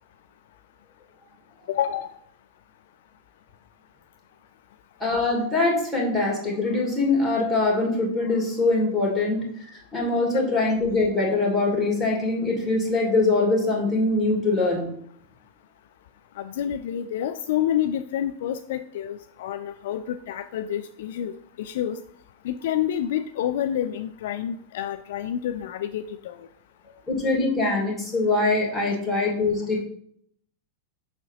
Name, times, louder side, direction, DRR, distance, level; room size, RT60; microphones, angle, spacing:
voice 1, 1.7-2.1 16.4-22.0 22.4-26.4, left 10 dB, 55° left, 9 dB, 0.3 m, -28 dB
voice 2, 5.0-14.9 27.1-29.8, left 3 dB, 5° left, -4 dB, 2.7 m, -23 dB
7.2 x 6.2 x 3.0 m, 0.66 s
figure-of-eight pair, 90°, 0 cm